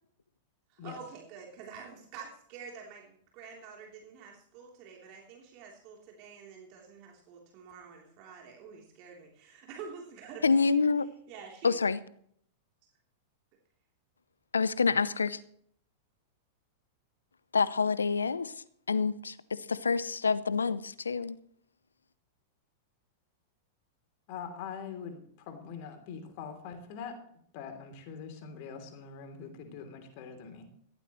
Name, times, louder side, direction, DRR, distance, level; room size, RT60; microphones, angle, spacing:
voice 1, 0.7-10.8 11.3-11.7, right 6 dB, 45° right, -1 dB, 3.4 m, -48 dB
voice 2, 10.4-11.1 11.6-12.0 14.5-15.4 17.5-18.5 18.9-21.4, left 5 dB, 80° left, 18 dB, 0.7 m, -27 dB
voice 3, 24.3-27.1 27.5-30.7, left 6 dB, 50° left, 6 dB, 3.2 m, -43 dB
17.5 x 15.5 x 3.1 m, 0.65 s
figure-of-eight pair, 95°, 0 cm